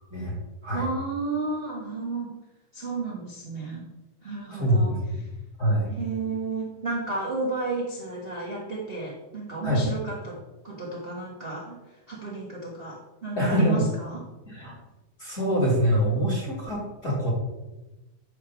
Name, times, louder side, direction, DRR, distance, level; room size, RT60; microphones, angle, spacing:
voice 1, 0.7-2.3 2.7-3.8 4.2-4.9 5.2-5.3 5.9-10.4 10.6-11.8 12.1-14.2, right 3 dB, 80° right, -4 dB, 0.5 m, -32 dB
voice 2, 4.5-5.2 5.6-5.9 9.6-9.8 13.4-13.8 14.5-14.7 15.2-17.3, equal, 30° left, -4 dB, 1.9 m, -24 dB
9.2 x 3.6 x 5.9 m, 1.1 s
omnidirectional pair, 3.7 m